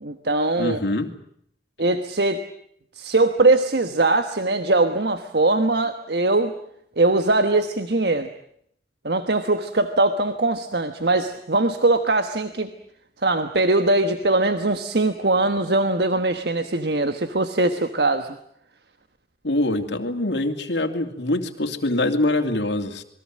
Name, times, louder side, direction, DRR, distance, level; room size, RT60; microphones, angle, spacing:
voice 1, 0.0-0.8 1.8-2.4 3.0-6.5 7.0-8.3 9.0-12.7 13.2-18.4, right 2 dB, 65° right, 9 dB, 1.3 m, -21 dB
voice 2, 0.6-1.1 19.4-23.0, left 1 dB, 85° left, 4 dB, 2.7 m, -24 dB
27.5 x 21.5 x 7.6 m, 0.71 s
head